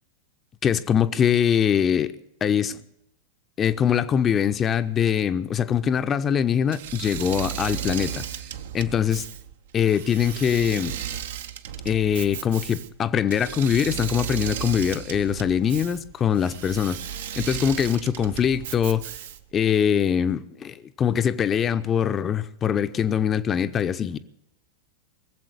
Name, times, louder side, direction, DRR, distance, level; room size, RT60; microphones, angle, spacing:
voice 1, 0.6-2.1 2.4-2.8 3.6-8.2 8.7-9.3 9.7-11.0 11.8-17.0 17.4-19.1 19.5-24.2, left 8 dB, 25° left, 0.6 m, -23 dB
Engine / Mechanisms, 6.7-19.6, right 10 dB, 55° right, 0.8 m, -35 dB
20.0 x 7.7 x 8.2 m
figure-of-eight pair, 90°, 0 cm